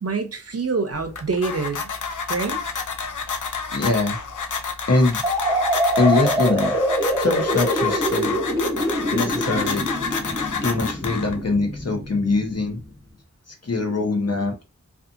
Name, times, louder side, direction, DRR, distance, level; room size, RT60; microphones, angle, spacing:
voice 1, 0.0-1.8 2.3-2.6, right 4 dB, 50° right, 0.6 m, -25 dB
sound 1, 0.9-11.6, left 5 dB, 80° left, 0.5 m, -29 dB
voice 2, 3.7-4.2 4.9-5.2 6.0-6.8 7.2-8.4 9.1-9.8 10.6-12.8 13.5-14.6, left 3 dB, 55° left, 0.8 m, -22 dB
sound 2, 5.2-12.9, right 1 dB, 10° right, 0.9 m, -25 dB
2.6 x 2.4 x 2.5 m
wide cardioid pair, 45°, 30 cm